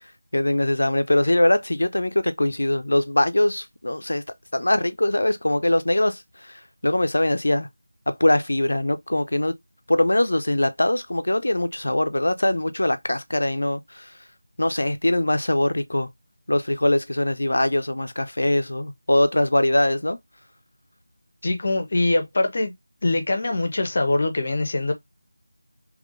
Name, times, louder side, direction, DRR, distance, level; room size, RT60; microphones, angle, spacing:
voice 1, 0.3-4.2 4.5-7.7 8.1-9.5 9.9-14.0 14.6-16.1 16.5-20.2, left 1 dB, 80° left, 0.6 m, -22 dB
voice 2, 21.4-22.7 23.0-24.9, left 2 dB, 50° left, 0.9 m, -23 dB
3.7 x 2.9 x 2.5 m
figure-of-eight pair, 170°, 0 cm